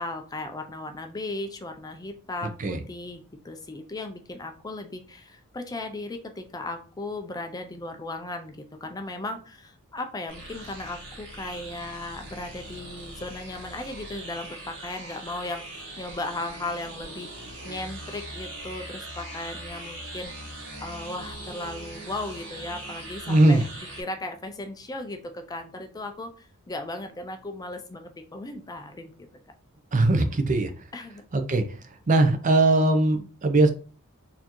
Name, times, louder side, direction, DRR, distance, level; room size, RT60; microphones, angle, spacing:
voice 1, 0.0-23.6 24.0-29.1 30.9-31.2, left 2 dB, 15° left, 6 dB, 0.4 m, -36 dB
sound 1, 10.3-24.0, right 1 dB, 60° right, 1.4 m, -41 dB
voice 2, 23.3-23.6 29.9-30.7 31.3-31.6 32.1-33.7, right 2 dB, 35° right, 7 dB, 0.5 m, -20 dB
4.2 x 2.7 x 2.9 m, 0.38 s
head